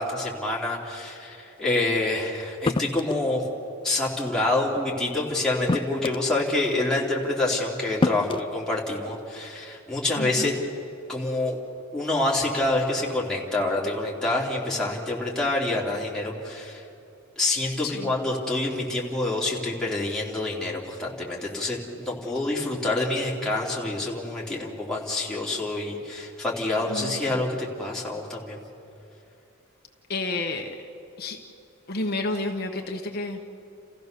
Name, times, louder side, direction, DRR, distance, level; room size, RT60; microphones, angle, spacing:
voice 1, 0.0-3.5 3.8-10.5 11.1-11.6 11.9-16.8 17.4-28.6, left 2 dB, 5° left, -5 dB, 3.1 m, -27 dB
sound 1, 2.7-3.3 4.7-4.9 5.7-6.4 7.4-7.5 8.0-8.5, left 3 dB, 25° left, 0.4 m, -26 dB
voice 2, 10.2-10.5 17.8-18.1 26.9-27.4 30.1-30.8 31.2-31.4 31.9-33.5, left 2 dB, 50° left, 3 dB, 1.2 m, -31 dB
29.5 x 15.0 x 6.8 m, 2.9 s
head